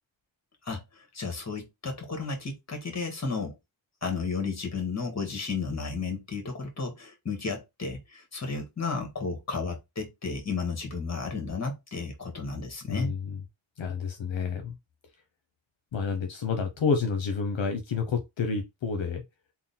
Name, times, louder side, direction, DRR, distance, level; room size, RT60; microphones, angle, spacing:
voice 1, 0.6-3.6 4.0-13.1, left 4 dB, 35° left, 1.5 m, -33 dB
voice 2, 12.9-13.4 13.8-14.7 15.9-19.2, left 5 dB, 70° left, 0.8 m, -29 dB
3.7 x 2.2 x 4.0 m
cardioid pair, 70°, 47 cm